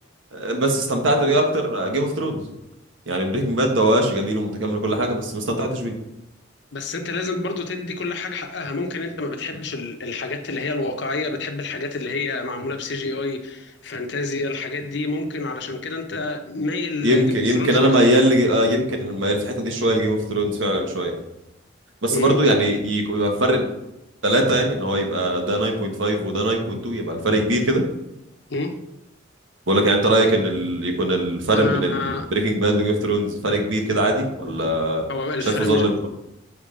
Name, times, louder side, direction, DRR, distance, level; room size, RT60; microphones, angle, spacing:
voice 1, 0.3-2.4 3.1-5.9 17.0-21.1 22.0-23.7 24.2-27.8 29.7-35.0 35.4-36.1, right 1 dB, 80° right, 3 dB, 1.3 m, -21 dB
voice 2, 6.7-17.9 22.1-22.4 28.5-28.8 31.5-32.3 35.1-35.9, left 3 dB, 60° left, 6 dB, 0.8 m, -28 dB
7.2 x 3.7 x 5.0 m, 0.87 s
head